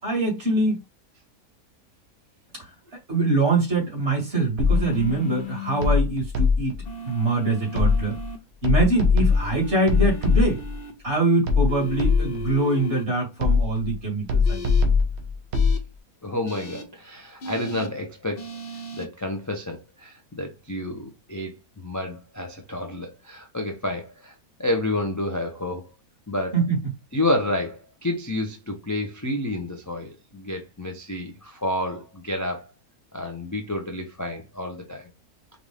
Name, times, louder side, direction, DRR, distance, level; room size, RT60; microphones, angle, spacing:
voice 1, 0.0-0.8 2.6-2.7 3.1-6.8 7.0-8.2 8.6-10.6 11.0-14.6 26.5-26.8, right 2 dB, 45° right, 2.8 m, -23 dB
sound 1, 4.6-5.1 5.8-6.9 7.8-8.3 8.6-10.8 11.5-12.5 13.4-13.9 14.3-15.8, left 4 dB, 65° right, 1.4 m, -21 dB
sound 2, 4.7-5.9 6.9-8.4 9.3-10.9 11.7-13.0 14.4-14.8 15.5-15.8 16.5-16.8 17.4-17.9 18.4-19.1, left 2 dB, 45° left, 0.9 m, -36 dB
voice 2, 16.2-18.6 18.9-25.9 26.3-26.6 27.1-32.7 33.1-35.1, left 1 dB, 25° left, 0.4 m, -30 dB
5.1 x 2.6 x 3.4 m
omnidirectional pair, 1.6 m